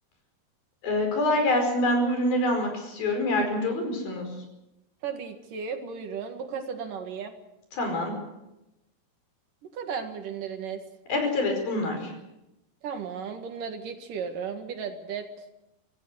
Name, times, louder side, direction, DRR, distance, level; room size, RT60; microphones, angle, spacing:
voice 1, 0.8-4.3 7.7-8.1 11.1-12.1, left 1 dB, 70° left, 4 dB, 6.8 m, -25 dB
voice 2, 5.0-7.3 9.6-10.8 12.8-15.3, right 6 dB, 65° right, 6 dB, 3.2 m, -35 dB
25.5 x 15.5 x 8.0 m, 0.93 s
omnidirectional pair, 4.3 m